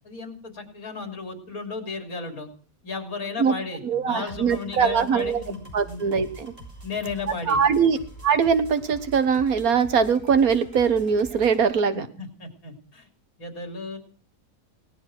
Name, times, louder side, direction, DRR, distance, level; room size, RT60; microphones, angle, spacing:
voice 1, 0.0-2.5 2.8-6.0 6.8-7.8 11.9-13.1 13.4-14.0, left 4 dB, 90° left, 5 dB, 3.7 m, -34 dB
voice 2, 3.8-5.4 5.7-6.5 7.5-8.0 8.2-12.1, right 6 dB, 85° right, 11 dB, 1.8 m, -21 dB
sound 1, 4.3-11.6, right 1 dB, 25° right, 5.3 m, -44 dB
18.5 x 12.5 x 6.1 m, 0.41 s
omnidirectional pair, 1.5 m